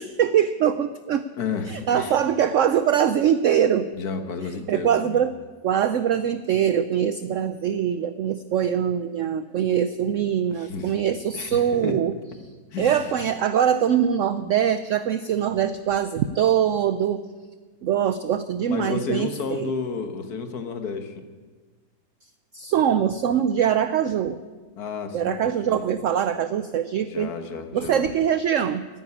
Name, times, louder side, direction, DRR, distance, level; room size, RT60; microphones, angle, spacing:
voice 1, 0.0-1.3 1.7-3.9 4.7-5.3 5.6-12.1 12.8-17.2 17.8-19.7 22.5-24.4 25.1-27.3 27.7-28.9, right 9 dB, 75° right, 12 dB, 0.7 m, -23 dB
voice 2, 1.4-2.2 3.9-5.2 10.5-10.9 11.3-12.0 12.7-13.1 18.7-21.2 24.8-25.8 27.1-28.1, left 5 dB, 60° left, 8 dB, 1.8 m, -32 dB
13.5 x 10.0 x 9.7 m, 1.4 s
omnidirectional pair, 1.9 m